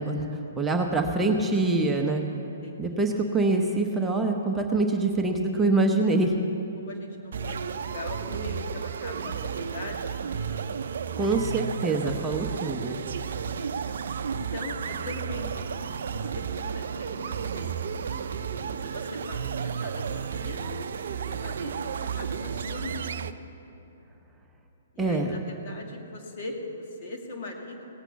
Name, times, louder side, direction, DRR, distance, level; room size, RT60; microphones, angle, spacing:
voice 1, 0.0-2.2 2.8-6.3 11.2-13.0 25.0-25.3, right 3 dB, 10° right, 1 dB, 0.9 m, -25 dB
voice 2, 2.4-3.0 6.8-10.1 13.2-14.0 14.3-18.2 18.8-23.2 24.9-27.9, left 2 dB, 50° left, 1 dB, 2.2 m, -41 dB
sound 1, 7.3-23.3, right 7 dB, 65° right, 0.5 m, -33 dB
17.5 x 8.1 x 7.0 m, 3.0 s
hypercardioid pair, 130°, 0 cm